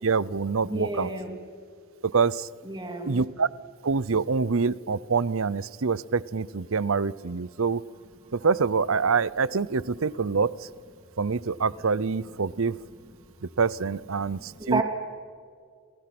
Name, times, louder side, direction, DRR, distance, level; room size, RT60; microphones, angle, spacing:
voice 1, 0.0-1.1 2.0-2.5 3.1-3.5 3.8-7.8 8.3-10.5 11.2-12.8 13.6-14.8, right 5 dB, 65° right, 20 dB, 0.7 m, -25 dB
voice 2, 0.6-1.4 2.6-3.2 8.3-8.4 14.2-14.8, right 2 dB, 20° right, 4 dB, 3.1 m, -31 dB
29.5 x 29.5 x 6.1 m, 2.1 s
head